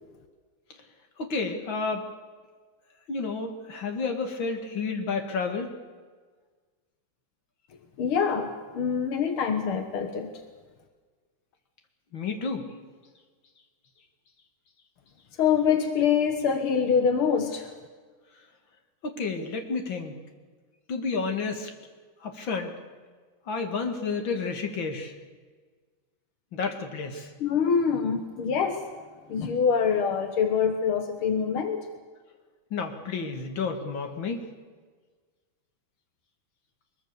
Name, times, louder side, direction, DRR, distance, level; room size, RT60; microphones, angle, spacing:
voice 1, 1.2-2.1 3.1-5.8 12.1-12.7 19.0-20.2 20.9-21.7 22.2-22.7 23.5-25.1 26.5-27.3 32.7-34.4, left 4 dB, 65° left, 5 dB, 3.0 m, -31 dB
voice 2, 8.0-10.3 15.4-17.7 27.4-28.9 29.3-31.8, left 6 dB, 90° left, 6 dB, 2.3 m, -25 dB
23.0 x 22.0 x 7.0 m, 1.5 s
omnidirectional pair, 2.3 m